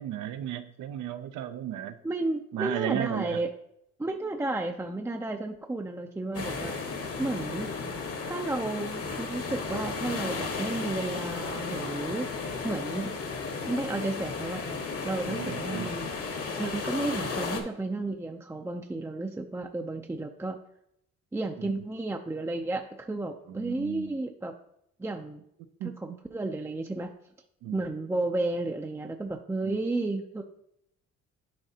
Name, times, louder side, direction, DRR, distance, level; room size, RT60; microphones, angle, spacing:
voice 1, 0.0-2.0 2.5-3.4 7.2-7.3 15.3-15.9 21.6-21.7 23.5-24.2 25.8-26.0 27.6-27.8 29.6-29.8, right 11 dB, 85° right, 10 dB, 0.6 m, -34 dB
voice 2, 2.0-3.5 4.0-6.7 7.2-7.7 8.2-13.1 13.7-16.1 16.6-20.6 21.3-24.5 25.0-25.4 25.8-27.1 27.7-30.4, right 2 dB, 10° right, 3 dB, 0.5 m, -32 dB
sound 1, 6.3-17.6, left 4 dB, 50° left, 1.2 m, -34 dB
10.5 x 3.9 x 2.8 m, 0.76 s
cardioid pair, 90°, 30 cm